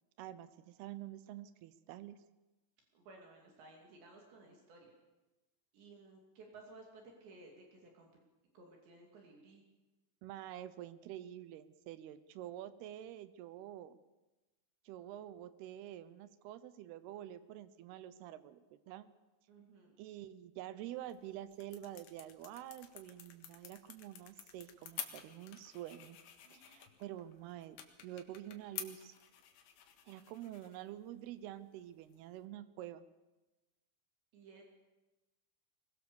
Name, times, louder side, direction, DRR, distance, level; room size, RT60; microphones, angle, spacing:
voice 1, 0.2-2.2 10.2-14.0 14.9-19.1 20.0-26.2 26.5-27.8 28.0-29.2 30.1-33.1, right 12 dB, 85° right, 14 dB, 2.3 m, -48 dB
voice 2, 2.9-4.9 5.7-8.1 8.5-9.6 19.5-20.0 26.4-26.9 34.3-34.6, right 3 dB, 65° right, 1 dB, 4.8 m, -57 dB
sound 1, 20.9-32.5, left 10 dB, 75° left, 4.1 m, -52 dB
22.5 x 21.0 x 7.1 m, 1.1 s
omnidirectional pair, 5.7 m